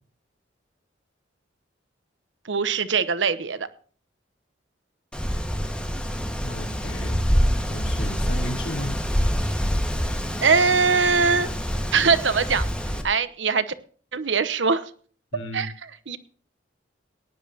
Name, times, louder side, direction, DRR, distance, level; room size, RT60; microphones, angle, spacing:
voice 1, 2.5-3.7 10.4-11.5 11.9-12.6 13.0-13.7 14.1-14.8 15.5-16.2, right 5 dB, 80° right, 13 dB, 1.0 m, -22 dB
Wind, 5.1-13.0, equal, 5° left, 1.6 m, -26 dB
voice 2, 6.4-7.2 7.7-9.0 15.3-15.7, left 1 dB, 90° left, 0 dB, 4.1 m, -34 dB
18.0 x 10.5 x 2.9 m, 0.44 s
head